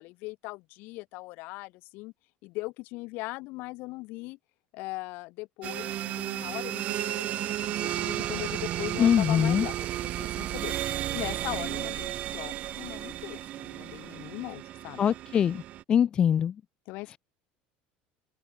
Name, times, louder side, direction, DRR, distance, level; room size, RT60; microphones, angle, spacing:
voice 1, 0.0-2.1 2.4-4.4 4.7-10.7 11.1-15.0 16.9-17.2, left 23 dB, 55° left, 3.6 m, -39 dB
sound 1, 5.6-15.8, right 13 dB, 40° right, 1.1 m, -33 dB
voice 2, 9.0-9.7 15.0-15.6 15.9-16.5, left 8 dB, 25° left, 0.4 m, -23 dB
open air
cardioid pair, 170°, 4 cm